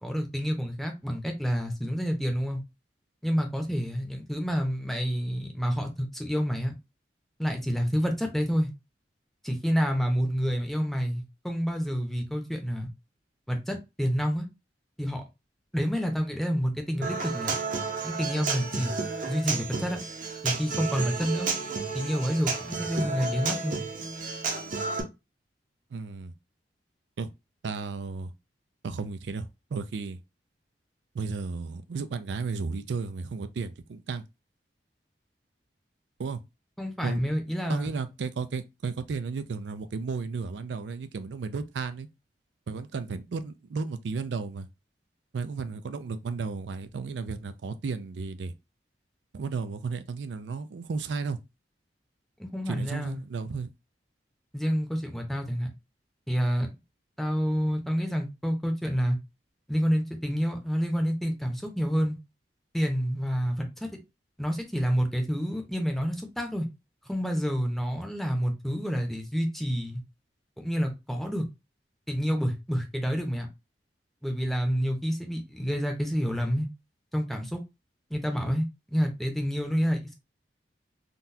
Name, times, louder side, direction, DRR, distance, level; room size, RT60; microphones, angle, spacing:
voice 1, 0.0-2.6 3.2-6.7 7.4-8.7 9.4-12.9 13.5-14.5 15.0-15.2 15.7-17.6 18.0-20.0 20.4-21.5 21.9-23.8 36.8-37.9 52.4-53.2 54.5-55.7 56.3-56.7 57.2-59.2 59.7-62.2 62.7-63.9 64.4-66.7 67.1-70.0 70.6-71.5 72.1-73.5 74.2-76.7 77.1-77.6 78.1-80.1, equal, ahead, 0.7 m, -28 dB
Human voice / Acoustic guitar, 17.0-25.0, right 4 dB, 50° right, 0.7 m, -32 dB
voice 2, 25.9-26.3 27.2-27.3 27.6-28.3 28.8-30.2 31.1-34.2 36.2-36.4 37.0-37.2 37.7-42.1 42.7-44.7 45.3-48.5 49.3-51.4 52.7-53.7, right 4 dB, 80° right, 0.4 m, -33 dB
3.8 x 2.2 x 2.6 m
head